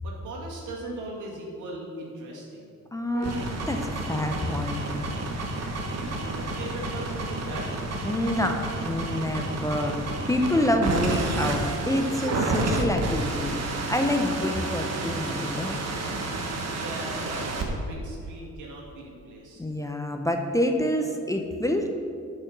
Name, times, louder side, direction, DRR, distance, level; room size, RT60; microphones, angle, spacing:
voice 1, 0.0-2.7 5.9-7.8 16.7-19.6, right 1 dB, 80° right, -3 dB, 2.3 m, -39 dB
voice 2, 2.9-3.4 3.7-4.9 8.0-10.0 10.3-13.6 13.9-15.8 19.6-21.9, left 1 dB, 10° left, 4 dB, 0.7 m, -27 dB
sound 1, 3.1-17.7, right 2 dB, 55° right, 1.4 m, -30 dB
8.4 x 5.5 x 6.1 m, 2.3 s
cardioid pair, 90°, 30 cm